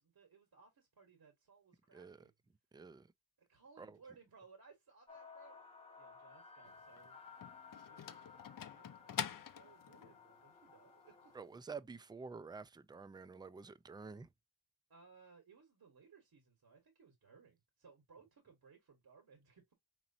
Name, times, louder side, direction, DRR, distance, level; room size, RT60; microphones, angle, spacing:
voice 1, 0.0-2.3 3.4-5.6 6.0-11.4 14.9-19.7, right 5 dB, 70° right, 1.5 m, -63 dB
voice 2, 1.9-2.3 2.7-3.1 3.8-4.0 11.3-14.3, right 4 dB, 15° right, 0.3 m, -49 dB
sound 1, 5.1-11.4, left 5 dB, 15° left, 0.7 m, -57 dB
sound 2, 6.6-10.2, left 8 dB, 60° left, 0.5 m, -45 dB
5.0 x 3.0 x 2.7 m
wide cardioid pair, 130°, 37 cm